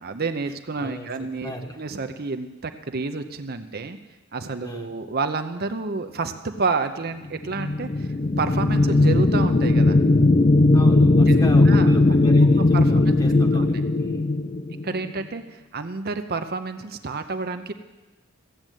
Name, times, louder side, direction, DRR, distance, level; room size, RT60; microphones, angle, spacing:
voice 1, 0.0-4.0 4.3-8.1 8.4-10.0 11.3-11.4 11.7-11.9 12.7-13.8 14.8-17.7, right 4 dB, 45° right, 7 dB, 0.7 m, -29 dB
voice 2, 0.8-1.8 4.6-4.9 10.7-14.3, equal, 15° left, 4 dB, 1.3 m, -36 dB
sound 1, 7.4-15.1, left 2 dB, 30° left, 0.5 m, -18 dB
15.0 x 7.7 x 9.2 m, 1.2 s
head